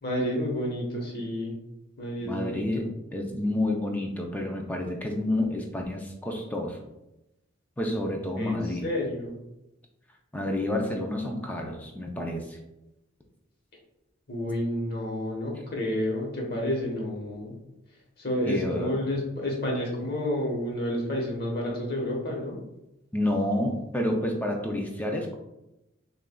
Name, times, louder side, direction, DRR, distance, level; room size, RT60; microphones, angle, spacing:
voice 1, 0.0-1.5 2.0-2.6 8.4-9.3 14.3-17.6 18.2-22.6, left 1 dB, 50° left, -1 dB, 1.1 m, -30 dB
voice 2, 2.2-6.8 7.8-8.9 10.3-12.6 18.5-18.9 23.1-25.4, left 1 dB, 10° left, 1 dB, 0.4 m, -29 dB
6.4 x 2.5 x 2.3 m, 0.92 s
head